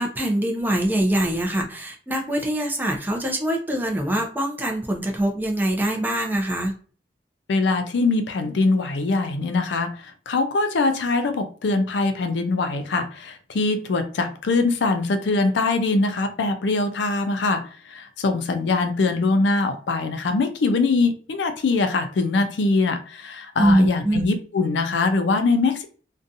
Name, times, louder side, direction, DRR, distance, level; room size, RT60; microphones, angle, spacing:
voice 1, 0.0-6.7 23.6-24.3, right 1 dB, 10° right, 2 dB, 0.5 m, -23 dB
voice 2, 7.5-25.8, left 3 dB, 90° left, 8 dB, 0.4 m, -22 dB
2.5 x 2.2 x 2.6 m, 0.40 s
head